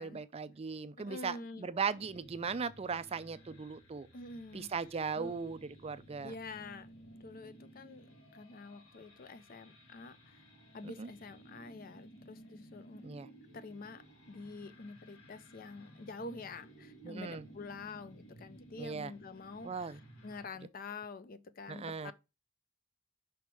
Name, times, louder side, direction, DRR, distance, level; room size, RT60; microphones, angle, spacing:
voice 1, 0.0-4.1 4.5-6.3 10.8-11.1 13.0-13.3 17.0-17.5 18.8-19.1 19.6-20.0 21.7-22.1, right 5 dB, 30° right, 0.4 m, -38 dB
voice 2, 1.0-1.7 4.1-4.7 5.2-5.3 6.2-6.9 7.2-8.1 8.3-10.4 10.7-13.1 13.5-22.1, left 3 dB, 45° left, 0.5 m, -47 dB
sound 1, 1.9-20.5, right 1 dB, 75° left, 2.2 m, -57 dB
6.0 x 3.5 x 4.6 m
head